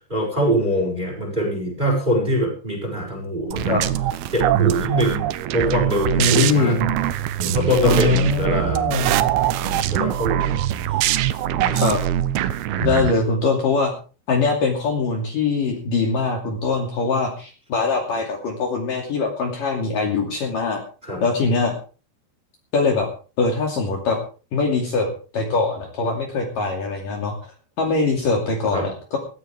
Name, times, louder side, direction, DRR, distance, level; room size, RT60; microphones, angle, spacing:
voice 1, 0.1-3.8 4.3-5.2 5.5-6.8 7.4-8.9 9.5-10.6 11.5-11.8 21.0-21.2 28.7-28.9, equal, 10° right, 1 dB, 6.6 m, -23 dB
sound 1, 3.5-13.1, right 12 dB, 75° right, 2.5 m, -22 dB
voice 2, 6.2-6.9 7.8-9.2 11.7-12.0 12.7-13.9 14.3-20.8 21.2-21.7 22.7-23.1 23.4-24.2 24.5-27.5 27.8-29.2, left 4 dB, 50° left, 1 dB, 3.9 m, -22 dB
18.0 x 15.0 x 3.6 m, 0.37 s
omnidirectional pair, 5.1 m